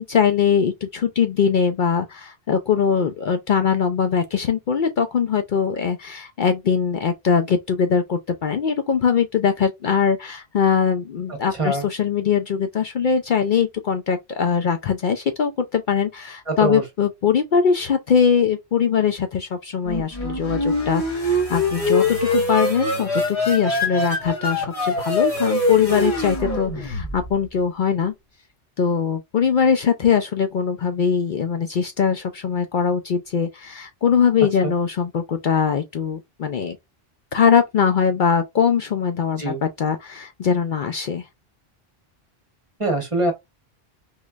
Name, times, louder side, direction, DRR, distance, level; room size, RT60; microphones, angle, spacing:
voice 1, 0.0-28.1 28.8-36.8 37.3-41.3, left 7 dB, 60° left, 0.6 m, -21 dB
voice 2, 11.3-11.9 16.5-16.8 34.6-34.7 39.4-39.6 42.8-43.3, right 2 dB, 30° right, 1.3 m, -23 dB
Electric Engine I, 19.8-27.5, left 2 dB, 35° left, 1.8 m, -23 dB
3.8 x 3.1 x 2.3 m
omnidirectional pair, 1.1 m